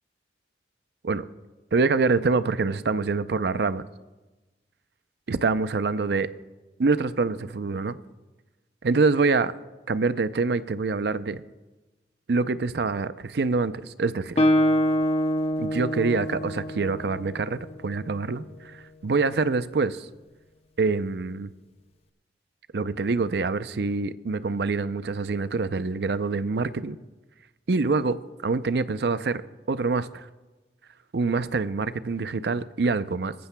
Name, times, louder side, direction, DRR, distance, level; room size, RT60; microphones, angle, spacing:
voice 1, 1.7-3.8 5.3-6.3 6.8-8.0 8.8-9.5 9.9-11.4 12.3-14.4 15.6-20.1 20.8-21.5 22.7-27.0 27.7-28.2 28.4-29.4 29.7-30.3 31.1-33.3, right 4 dB, 65° right, 0.5 m, -25 dB
Guitar, 14.4-18.0, equal, 35° left, 0.7 m, -25 dB
22.0 x 14.0 x 2.2 m
head